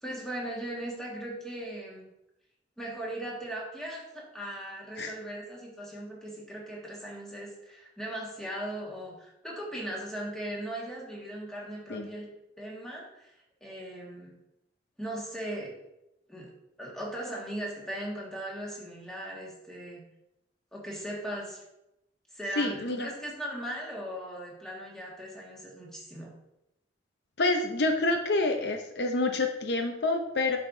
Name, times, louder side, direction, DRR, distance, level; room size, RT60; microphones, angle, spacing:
voice 1, 0.0-2.1 2.8-12.3 12.6-13.3 13.6-14.3 15.0-15.7 16.3-16.5 16.8-20.0 20.7-21.6 22.3-26.3, right 1 dB, 5° left, -4 dB, 1.7 m, -38 dB
voice 2, 22.6-23.1 27.4-30.6, left 2 dB, 65° left, 4 dB, 0.6 m, -27 dB
8.9 x 6.2 x 2.6 m, 0.88 s
head